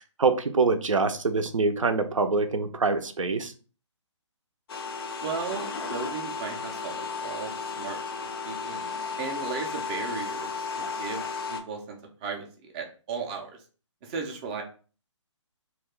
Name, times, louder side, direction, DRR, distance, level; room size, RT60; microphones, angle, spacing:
voice 1, 0.2-3.5, right 4 dB, 85° right, 8 dB, 0.5 m, -25 dB
sound 1, 4.7-11.6, left 5 dB, 50° left, 0.5 m, -34 dB
voice 2, 5.2-7.5 7.8-8.8 9.2-12.5 12.7-13.6 14.0-14.6, right 5 dB, 15° right, 2 dB, 0.3 m, -36 dB
2.3 x 2.2 x 3.5 m, 0.37 s
figure-of-eight pair, 140°, 16 cm